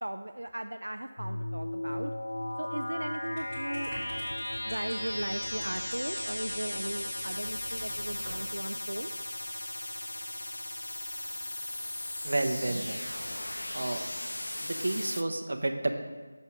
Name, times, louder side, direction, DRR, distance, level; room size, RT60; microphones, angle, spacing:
voice 1, 0.0-2.1 2.6-3.9 4.6-9.1, right 1 dB, 80° right, 7 dB, 0.4 m, -37 dB
sound 1, 1.2-15.2, left 1 dB, 75° left, 0.4 m, -36 dB
sound 2, 3.4-8.4, equal, ahead, 2.4 m, -45 dB
voice 2, 12.2-13.0 13.7-14.0 14.6-15.9, right 2 dB, 55° right, 5 dB, 0.9 m, -30 dB
7.1 x 5.5 x 6.1 m, 1.4 s
figure-of-eight pair, 165°, 0 cm